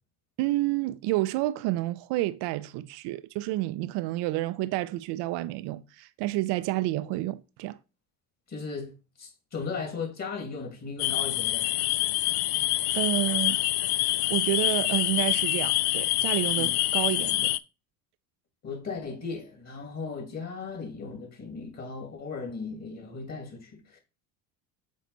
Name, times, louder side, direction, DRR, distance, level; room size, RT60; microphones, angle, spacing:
voice 1, 0.4-7.8 12.9-13.6 14.3-17.6, right 17 dB, 65° right, 0.6 m, -29 dB
voice 2, 8.5-8.9 9.2-11.7 16.6-16.7 18.6-24.0, left 4 dB, 40° left, 2.4 m, -37 dB
sound 1, 11.0-17.6, left 17 dB, 65° left, 0.5 m, -26 dB
6.5 x 4.0 x 4.0 m
supercardioid pair, 90°, 43 cm